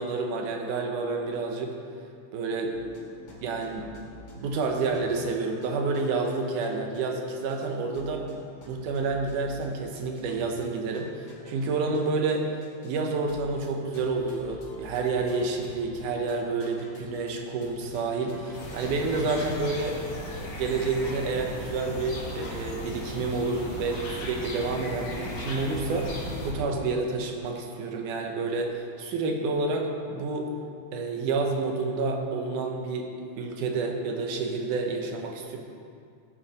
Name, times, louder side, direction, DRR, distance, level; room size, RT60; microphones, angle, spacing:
voice 1, 0.0-1.8 2.3-3.0 3.4-4.0 4.3-8.2 8.7-12.5 12.8-20.0 20.4-30.5 30.9-35.6, right 3 dB, 90° right, 2 dB, 2.6 m, -29 dB
sound 1, 2.7-6.3 6.6-6.7 6.9-12.3 12.6-13.0 13.3-17.4 17.6-18.9, left 2 dB, 35° left, 2.0 m, -49 dB
sound 2, 18.5-26.5, left 1 dB, 90° left, 3.8 m, -36 dB
15.5 x 7.9 x 4.3 m, 2.3 s
omnidirectional pair, 3.5 m